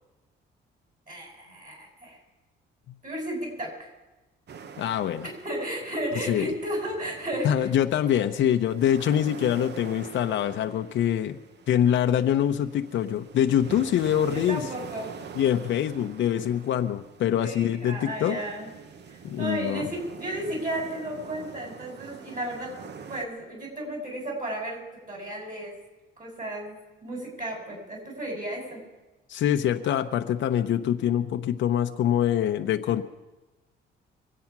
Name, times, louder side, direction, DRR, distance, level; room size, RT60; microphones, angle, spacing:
voice 1, 1.1-2.2 3.0-3.9 5.4-7.7 14.3-15.1 17.4-18.7 19.1-22.7 23.1-24.8 25.1-25.7 26.2-28.8, right 1 dB, 40° right, 0 dB, 7.2 m, -33 dB
sound 1, 4.5-23.2, right 6 dB, 60° right, 1.0 m, -45 dB
voice 2, 4.8-5.3 6.3-6.5 7.4-11.4 11.7-14.6 15.3-18.4 19.2-19.9 29.3-33.0, left 10 dB, 70° left, 7 dB, 0.8 m, -24 dB
24.0 x 8.6 x 6.0 m, 1.1 s
cardioid pair, 90°, 20 cm